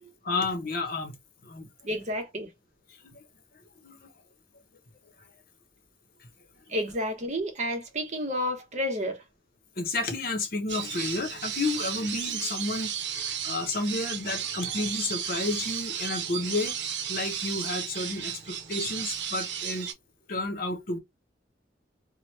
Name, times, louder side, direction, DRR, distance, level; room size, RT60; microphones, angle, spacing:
voice 1, 0.2-1.1 1.4-1.7 3.0-3.1 3.8-4.1 9.8-13.0 13.2-16.8 17.1-19.9 20.3-21.0, left 2 dB, 55° left, 0.8 m, -31 dB
voice 2, 1.8-2.5 6.7-9.2, equal, 40° right, 0.8 m, -30 dB
sound 1, 10.7-19.9, right 8 dB, 75° right, 0.7 m, -34 dB
2.9 x 2.1 x 3.1 m
head